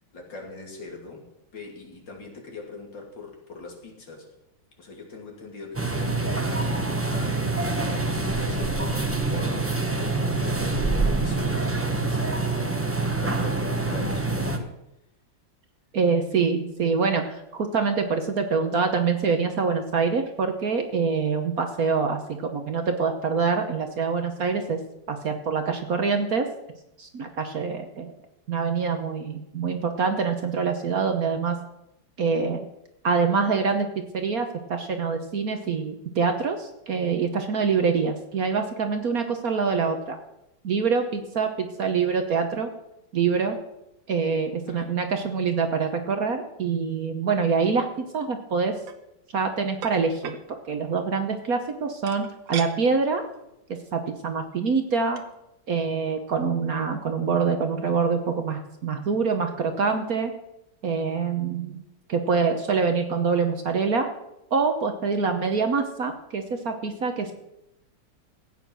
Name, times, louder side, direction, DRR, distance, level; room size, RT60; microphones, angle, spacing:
voice 1, 0.1-1.2 1.5-4.3 4.8-12.6 13.2-14.7 44.7-44.9, left 3 dB, 65° left, 1 dB, 3.3 m, -42 dB
sound 1, 5.7-14.6, right 3 dB, 10° right, 0.7 m, -26 dB
voice 2, 15.9-24.8 25.1-26.5 27.0-28.1 28.5-31.6 32.2-32.6 33.0-33.9 34.1-40.2 40.6-42.7 43.1-43.6 44.1-48.7 49.3-50.3 50.7-53.2 53.7-55.2 55.7-60.3 60.8-61.8 62.1-64.1 64.5-67.3, right 5 dB, 50° right, 6 dB, 1.3 m, -25 dB
sound 2, 48.8-49.0 49.8-50.4 52.1-52.7 53.2-53.4 53.7-53.9 54.9-55.0 55.2-55.3, right 8 dB, 75° right, 1.7 m, -37 dB
15.0 x 9.1 x 6.2 m, 0.88 s
omnidirectional pair, 2.2 m